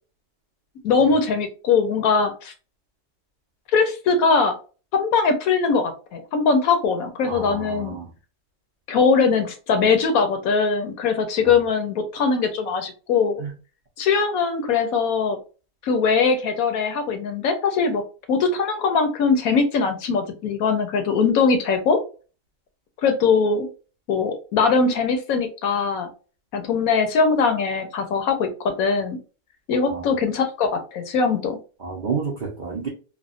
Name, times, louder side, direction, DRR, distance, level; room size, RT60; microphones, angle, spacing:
voice 1, 0.8-2.5 3.7-4.5 4.9-7.9 8.9-13.4 14.0-15.4 15.8-18.0 18.3-22.0 23.0-23.7 24.1-26.1 26.5-28.5 28.8-29.2 29.7-31.6, left 5 dB, 65° left, 6 dB, 1.1 m, -21 dB
voice 2, 7.2-8.1 13.4-13.5 29.9-30.0 31.8-32.9, right 5 dB, 55° right, -2 dB, 0.5 m, -30 dB
3.4 x 2.2 x 2.4 m, 0.35 s
omnidirectional pair, 1.7 m